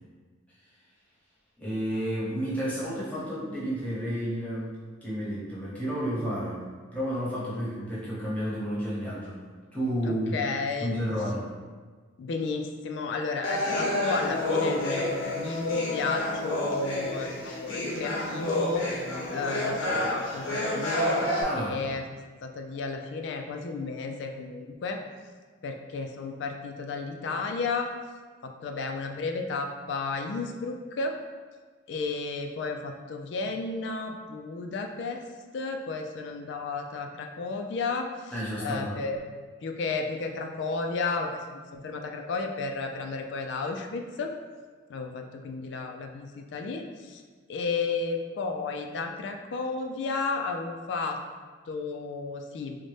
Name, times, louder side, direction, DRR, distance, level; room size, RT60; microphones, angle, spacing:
voice 1, 1.6-4.8 5.0-6.6 6.9-9.4 9.7-10.4 10.8-11.5 21.4-21.9 38.3-38.9, equal, 5° left, -8 dB, 0.9 m, -31 dB
voice 2, 10.0-10.9 12.2-18.9 19.3-21.3 21.6-22.0 22.4-25.0 25.6-27.9 28.4-31.1 31.9-35.2 35.5-38.3 38.6-39.2 39.6-44.3 44.9-47.2 47.5-51.2 51.7-52.8, left 4 dB, 60° left, 4 dB, 0.3 m, -32 dB
sound 1, 13.4-21.4, left 1 dB, 85° left, 0.7 m, -29 dB
3.9 x 2.1 x 3.2 m, 1.5 s
head